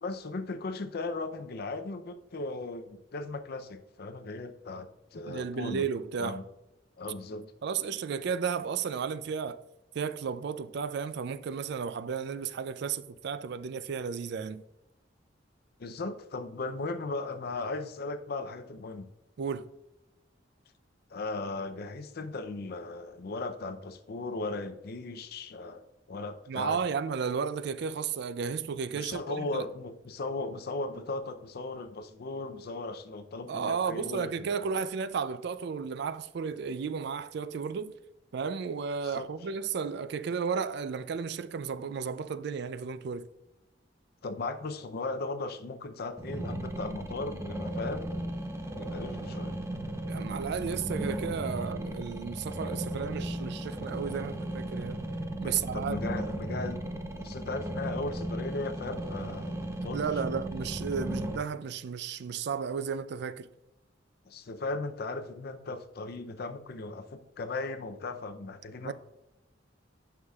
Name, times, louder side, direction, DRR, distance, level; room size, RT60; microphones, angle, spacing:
voice 1, 0.0-5.9 6.2-6.4 7.0-7.5 15.8-19.1 21.1-26.8 28.9-34.8 39.0-39.3 44.2-48.1 48.8-49.6 55.4-56.8 57.2-59.5 59.8-60.4 64.3-68.9, left 3 dB, 60° left, 0.5 m, -37 dB
voice 2, 5.2-6.4 7.6-9.6 9.9-14.6 19.4-19.7 26.5-29.7 33.5-37.9 38.3-43.3 50.1-55.0 55.4-56.1 59.9-63.5 68.8-68.9, right 6 dB, 65° right, 0.4 m, -33 dB
sound 1, 46.2-61.4, right 1 dB, 15° right, 0.7 m, -36 dB
9.5 x 5.7 x 2.3 m
head